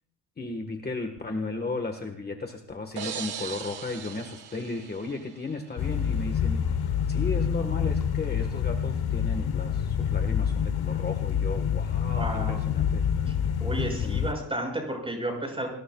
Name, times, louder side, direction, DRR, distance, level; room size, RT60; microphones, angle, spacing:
voice 1, 0.4-6.7 7.1-13.0 14.0-14.3, left 3 dB, 25° left, 4 dB, 1.4 m, -35 dB
sound 1, 3.0-5.7, right 8 dB, 85° right, 1.8 m, -39 dB
sound 2, 5.8-14.3, left 8 dB, 70° left, 1.1 m, -27 dB
voice 2, 12.2-12.6 13.2-13.3 13.6-15.7, right 1 dB, 15° right, 2 dB, 6.3 m, -32 dB
29.5 x 20.5 x 2.3 m, 0.70 s
wide cardioid pair, 165°, 38 cm